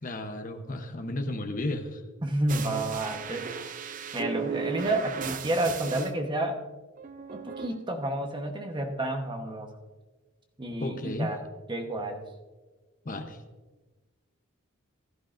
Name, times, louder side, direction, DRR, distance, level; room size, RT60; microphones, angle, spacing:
voice 1, 0.0-2.0 10.8-11.3 13.0-13.4, left 1 dB, 40° left, 6 dB, 0.8 m, -33 dB
voice 2, 2.2-3.8 4.1-6.6 7.3-9.7 10.6-11.4 11.7-12.2, right 1 dB, 20° right, 4 dB, 1.0 m, -30 dB
sound 1, 2.5-6.1 7.0-7.8, right 6 dB, 35° right, 0.5 m, -36 dB
16.0 x 11.5 x 2.5 m, 1.3 s
head